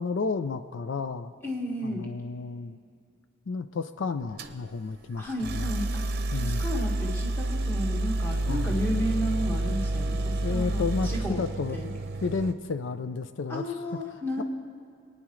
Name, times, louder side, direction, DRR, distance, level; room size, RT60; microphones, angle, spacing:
voice 1, 0.0-1.3 1.8-2.8 3.5-5.7 6.3-6.6 8.5-8.8 10.4-11.8 12.2-13.8 14.4-14.5, left 4 dB, 75° left, 10 dB, 0.4 m, -32 dB
voice 2, 1.4-2.1 5.2-11.4 11.7-11.9 13.5-14.4, equal, 10° left, -3 dB, 1.7 m, -33 dB
sound 1, 4.4-4.6 5.4-12.5, right 2 dB, 55° right, 0.7 m, -29 dB
26.0 x 9.7 x 3.2 m, 2.4 s
head